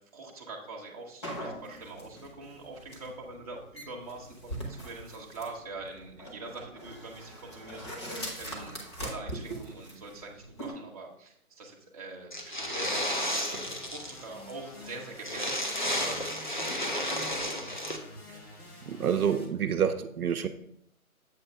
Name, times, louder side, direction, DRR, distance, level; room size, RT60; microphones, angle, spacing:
voice 1, 0.1-12.3 12.6-13.2 13.5-17.3, right 3 dB, 25° right, -2 dB, 0.7 m, -44 dB
sound 1, 1.2-10.7, right 1 dB, 20° left, 0.8 m, -42 dB
sound 2, 12.3-14.2 14.5-14.6 14.8-14.9 15.2-18.0, left 1 dB, 35° left, 0.4 m, -32 dB
sound 3, 12.6-19.5, left 1 dB, 75° left, 2.3 m, -49 dB
voice 2, 18.9-20.5, right 8 dB, 80° right, 8 dB, 0.6 m, -28 dB
7.4 x 2.6 x 5.1 m, 0.70 s
figure-of-eight pair, 155°, 44 cm